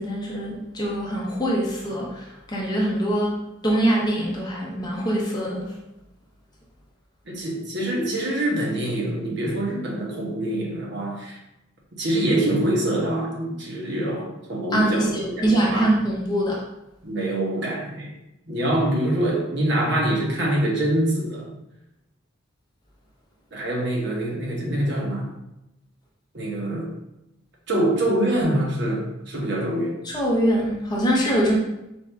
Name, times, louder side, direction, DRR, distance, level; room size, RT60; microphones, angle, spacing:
voice 1, 0.0-5.6 14.7-16.6 30.0-31.6, right 1 dB, 20° left, -3 dB, 0.7 m, -23 dB
voice 2, 7.3-11.4 11.9-15.9 17.0-18.1 18.5-21.5 23.5-25.3 26.3-26.9 27.7-30.0, right 1 dB, 55° right, -2 dB, 1.0 m, -25 dB
4.3 x 2.5 x 3.3 m, 0.91 s
head